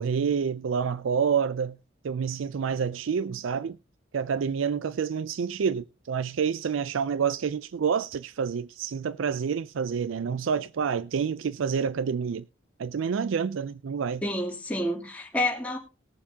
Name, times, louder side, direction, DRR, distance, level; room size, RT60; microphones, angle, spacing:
voice 1, 0.0-1.8 2.0-3.8 4.1-12.4 12.8-14.2, right 6 dB, 90° right, 0.4 m, -28 dB
voice 2, 14.2-15.8, left 1 dB, 5° left, 2.8 m, -29 dB
21.0 x 7.0 x 2.8 m
head